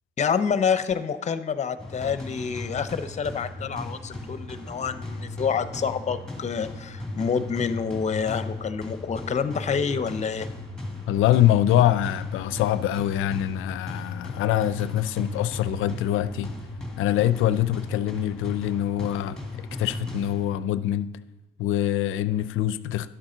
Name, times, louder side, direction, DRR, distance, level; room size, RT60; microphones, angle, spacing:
voice 1, 0.2-10.5, left 6 dB, 35° left, 0.6 m, -27 dB
sound 1, 1.8-20.8, left 2 dB, 5° left, 1.7 m, -36 dB
voice 2, 11.1-16.5 17.0-21.1 21.6-23.1, left 12 dB, 85° left, 0.4 m, -24 dB
11.5 x 7.4 x 3.9 m
cardioid pair, 90°, 20 cm